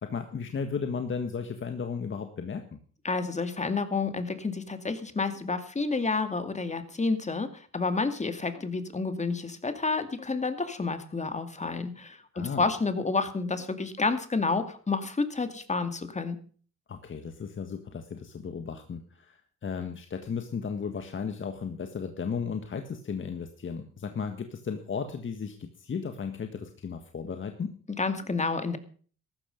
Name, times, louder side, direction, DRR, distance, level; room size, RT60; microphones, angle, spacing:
voice 1, 0.0-2.8 12.3-12.6 16.9-27.7, left 6 dB, 40° left, 6 dB, 1.6 m, -35 dB
voice 2, 3.0-16.4 28.0-28.8, left 4 dB, 25° left, 9 dB, 2.2 m, -30 dB
14.5 x 12.5 x 5.2 m, 0.43 s
cardioid pair, 90°, 30 cm